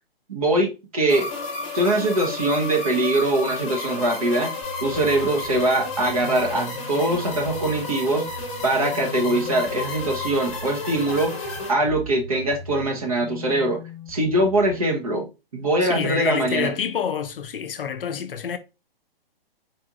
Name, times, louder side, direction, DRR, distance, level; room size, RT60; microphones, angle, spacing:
voice 1, 0.3-1.3 1.7-4.5 4.8-8.3 8.6-11.3 11.7-13.8 14.1-16.7, right 1 dB, 35° right, 0.9 m, -22 dB
sound 1, 1.1-11.7, left 3 dB, 30° left, 1.3 m, -32 dB
sound 2, 4.6-14.7, left 1 dB, 5° left, 0.5 m, -39 dB
voice 2, 15.8-18.6, left 7 dB, 65° left, 0.6 m, -27 dB
4.2 x 2.9 x 2.4 m
hypercardioid pair, 180°, 30 cm